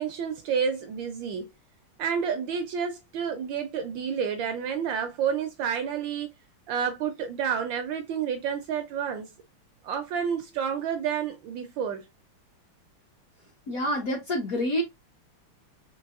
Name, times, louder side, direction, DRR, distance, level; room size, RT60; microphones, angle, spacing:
voice 1, 0.0-1.5 2.0-6.3 6.7-9.3 9.8-12.1, right 7 dB, 75° right, 1.1 m, -30 dB
voice 2, 13.7-14.8, equal, 55° left, 1.0 m, -27 dB
4.6 x 2.8 x 2.4 m
omnidirectional pair, 2.4 m